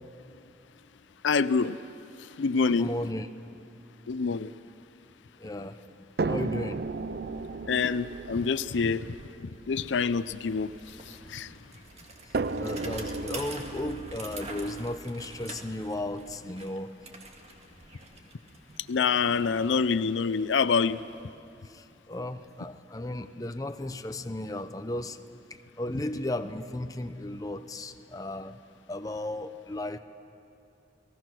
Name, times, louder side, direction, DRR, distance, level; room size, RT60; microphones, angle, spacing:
voice 1, 1.2-1.8 2.2-2.9 4.1-4.5 7.7-9.1 9.7-11.6 18.9-21.0, left 5 dB, 85° left, 15 dB, 0.5 m, -26 dB
voice 2, 2.7-3.3 5.4-5.8 6.3-6.8 12.6-16.9 21.7-25.2 25.5-28.6 28.9-30.0, left 1 dB, 20° left, 8 dB, 0.6 m, -35 dB
sound 1, 6.2-11.4 12.3-16.3 17.3-17.4 17.8-17.9, right 3 dB, 55° right, 0.5 m, -36 dB
Bicycle, 8.5-8.6 8.9-21.8, right 2 dB, 35° right, 1.9 m, -47 dB
30.0 x 19.0 x 6.1 m, 2.7 s
head